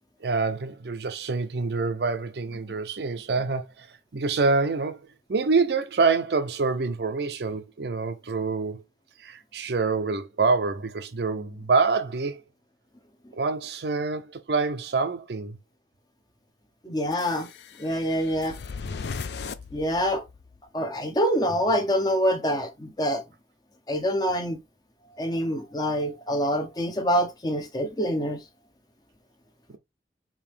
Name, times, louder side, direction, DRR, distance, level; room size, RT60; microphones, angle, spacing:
voice 1, 0.2-3.9 4.1-8.8 9.2-12.4 13.3-15.6 29.7-29.8, right 4 dB, 70° right, 0.5 m, -26 dB
voice 2, 16.8-17.5 17.8-18.6 19.7-20.2 20.7-23.2 23.9-24.6 25.2-28.4, equal, 20° left, 0.8 m, -26 dB
sound 1, 17.1-20.6, left 5 dB, 75° left, 0.4 m, -38 dB
4.8 x 2.8 x 3.4 m
head